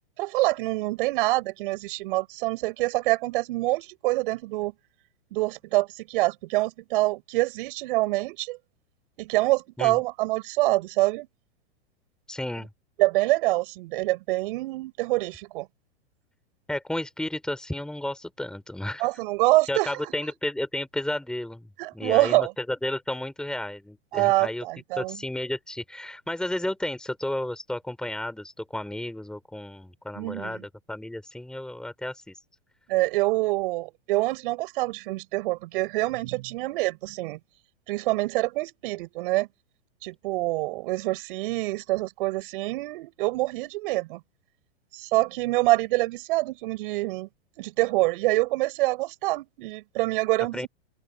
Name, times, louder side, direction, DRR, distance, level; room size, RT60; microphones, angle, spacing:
voice 1, 0.2-4.7 5.3-8.6 9.2-11.3 13.0-15.7 19.0-19.9 21.8-22.5 24.1-25.2 30.2-30.6 32.9-37.4 37.9-39.5 40.0-44.2 44.9-47.3 47.6-50.7, right 20 dB, 55° right, 7.7 m, -26 dB
voice 2, 12.3-12.7 16.7-19.1 19.7-21.7 21.9-24.6 25.0-32.4 50.5-50.7, left 1 dB, ahead, 3.8 m, -32 dB
open air
hypercardioid pair, 115°, 32 cm